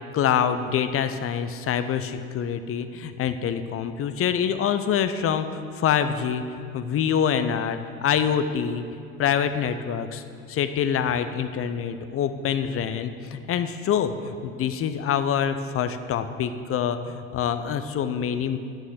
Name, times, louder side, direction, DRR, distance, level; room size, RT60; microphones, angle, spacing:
voice 1, 0.1-6.4 6.7-8.8 9.2-10.2 10.5-18.6, left 8 dB, 35° left, 10 dB, 0.6 m, -25 dB
9.4 x 6.2 x 6.5 m, 2.3 s
hypercardioid pair, 75°, 38 cm